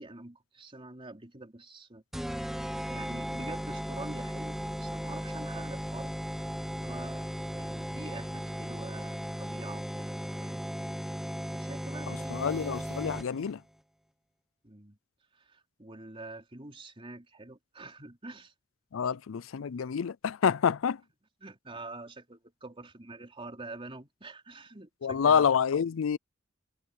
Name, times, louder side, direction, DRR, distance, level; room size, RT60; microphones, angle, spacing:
voice 1, 0.0-2.0 2.3-6.1 6.7-10.7 11.5-12.4 14.6-15.0 15.3-18.5 19.0-19.1 21.4-25.5, right 2 dB, 25° right, 3.7 m, -46 dB
sound 1, 2.1-13.5, equal, ahead, 0.8 m, -36 dB
sound 2, 12.0-13.2, right 6 dB, 60° right, 4.3 m, -59 dB
voice 2, 12.1-13.6 18.9-21.0 25.0-26.2, left 7 dB, 85° left, 0.4 m, -27 dB
head